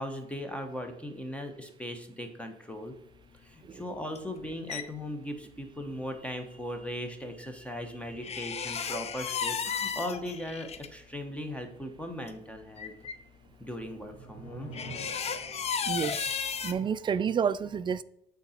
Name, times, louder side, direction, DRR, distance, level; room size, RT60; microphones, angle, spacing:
voice 1, 0.0-2.9 3.4-12.9 13.6-14.7, left 1 dB, 5° left, 5 dB, 0.9 m, -38 dB
sound 1, 4.2-4.8 8.2-10.9 12.0-12.1 12.3-12.4 12.8-13.2 14.7-16.7, left 6 dB, 40° left, 0.6 m, -34 dB
sound 2, 13.2-15.9, right 2 dB, 65° left, 2.6 m, -49 dB
voice 2, 15.8-18.0, right 7 dB, 30° right, 14 dB, 0.3 m, -30 dB
8.2 x 3.9 x 4.3 m, 0.79 s
cardioid pair, 110°, 17 cm